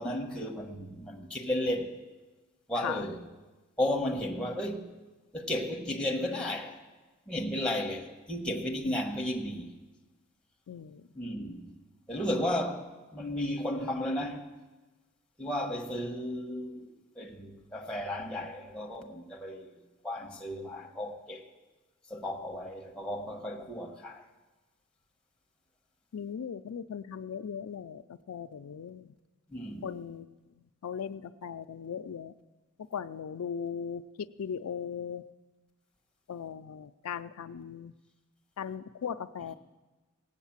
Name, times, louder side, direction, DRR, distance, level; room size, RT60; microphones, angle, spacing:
voice 1, 0.0-2.0 2.7-3.3 3.8-5.0 5.3-6.8 7.3-9.8 11.1-11.8 12.1-14.5 15.4-16.9 17.1-19.8 20.0-21.5 22.1-24.2 29.5-30.0, left 1 dB, 5° left, 1.2 m, -34 dB
voice 2, 10.7-11.0 26.1-29.1 29.8-30.3 30.8-32.3 32.9-35.3 36.3-37.9 38.6-39.5, left 7 dB, 80° left, 0.4 m, -38 dB
18.0 x 8.2 x 7.2 m
head